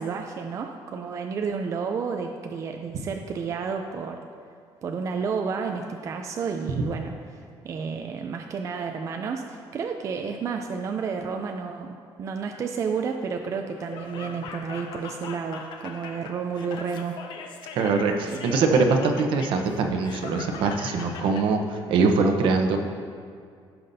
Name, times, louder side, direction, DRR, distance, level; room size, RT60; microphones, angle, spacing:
voice 1, 0.0-4.2 4.8-17.3 18.3-18.6, right 5 dB, 35° right, 4 dB, 0.4 m, -31 dB
Laughter, 13.8-21.5, left 5 dB, 55° left, 0.8 m, -40 dB
voice 2, 17.7-22.8, right 4 dB, 70° right, 4 dB, 0.8 m, -23 dB
16.0 x 5.8 x 2.7 m, 2.2 s
cardioid pair, 170°, 9 cm